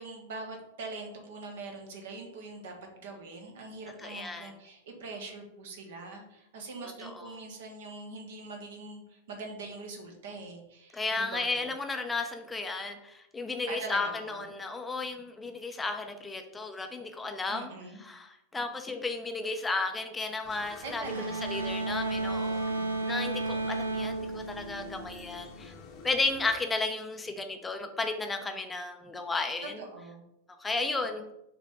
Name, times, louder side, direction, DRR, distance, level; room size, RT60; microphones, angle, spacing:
voice 1, 0.0-11.7 13.7-14.4 17.5-18.0 20.8-21.6 29.6-30.2, right 3 dB, 55° right, 3 dB, 1.3 m, -43 dB
voice 2, 4.0-4.5 7.0-7.3 10.9-17.7 18.0-22.6 23.1-25.7 26.0-29.8 30.6-31.3, left 3 dB, 10° left, 5 dB, 0.7 m, -33 dB
sound 1, 20.4-26.5, left 4 dB, 40° left, 1.0 m, -48 dB
sound 2, 21.0-25.5, right 3 dB, 75° right, 0.5 m, -33 dB
5.7 x 3.3 x 5.2 m, 0.83 s
figure-of-eight pair, 90°, 0 cm